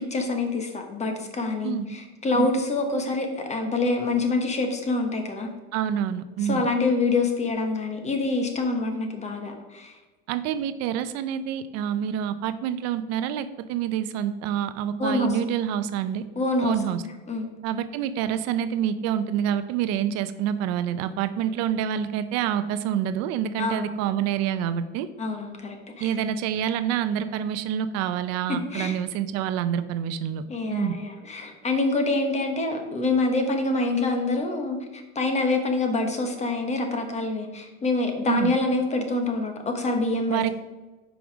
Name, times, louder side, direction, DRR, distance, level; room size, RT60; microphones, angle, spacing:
voice 1, 0.0-5.5 6.4-9.9 15.0-15.4 16.4-17.5 23.6-24.0 25.2-26.1 28.5-29.0 30.5-40.5, left 2 dB, 25° left, 4 dB, 1.1 m, -26 dB
voice 2, 5.7-6.6 10.3-16.2 16.6-17.0 17.6-25.1 26.0-30.4 30.7-30.9 38.3-38.5 40.3-40.5, right 9 dB, 60° right, 12 dB, 0.5 m, -27 dB
5.4 x 4.9 x 5.9 m, 1.2 s
cardioid pair, 140°, 29 cm